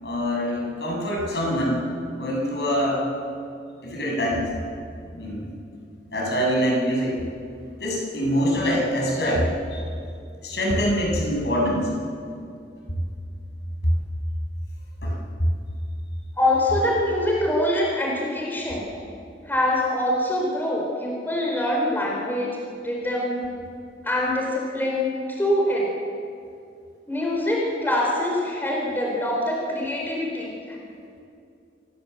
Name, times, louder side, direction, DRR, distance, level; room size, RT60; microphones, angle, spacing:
voice 1, 0.0-1.9 2.1-3.1 3.8-4.5 5.1-5.5 6.1-7.2 7.8-9.8 10.4-11.9 15.0-15.2, equal, 75° left, -2 dB, 7.4 m, -24 dB
voice 2, 16.4-18.8 19.5-22.5 22.8-23.4 24.0-25.9 27.1-30.8, left 1 dB, 10° left, -2 dB, 4.2 m, -24 dB
27.5 x 17.0 x 8.1 m, 2.5 s
head